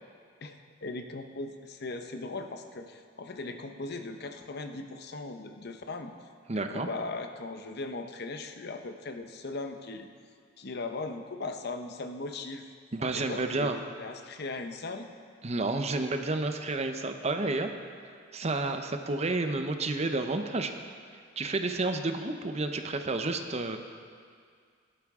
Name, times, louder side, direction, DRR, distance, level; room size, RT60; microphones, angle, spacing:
voice 1, 0.4-6.1 6.5-10.1 10.6-12.7 13.1-15.1, left 3 dB, 55° left, 7 dB, 0.7 m, -38 dB
voice 2, 6.5-6.9 12.9-13.8 15.4-17.7 18.3-20.7 21.4-23.8, right 2 dB, 35° right, 6 dB, 0.7 m, -30 dB
16.5 x 12.0 x 3.6 m, 2.1 s
head